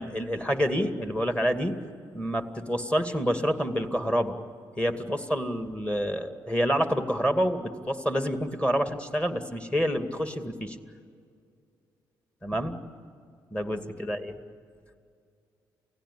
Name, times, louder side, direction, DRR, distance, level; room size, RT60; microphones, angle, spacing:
voice 1, 0.0-1.8 2.1-4.3 4.7-10.8 12.4-12.8 13.5-14.4, equal, 10° left, 7 dB, 2.4 m, -28 dB
29.0 x 16.5 x 8.6 m, 2.3 s
hypercardioid pair, 45°, 10 cm